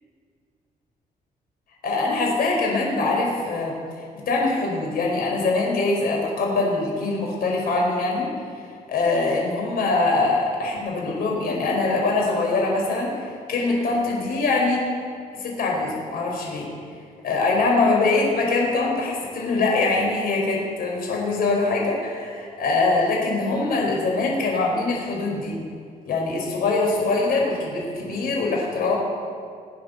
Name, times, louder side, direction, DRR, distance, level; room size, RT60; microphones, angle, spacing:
voice 1, 1.8-3.8 4.1-8.3 8.9-14.9 15.3-16.7 17.2-25.6 26.1-29.0, left 3 dB, 75° left, -1 dB, 4.9 m, -23 dB
21.0 x 8.9 x 6.9 m, 2.2 s
cardioid pair, 120°, 16 cm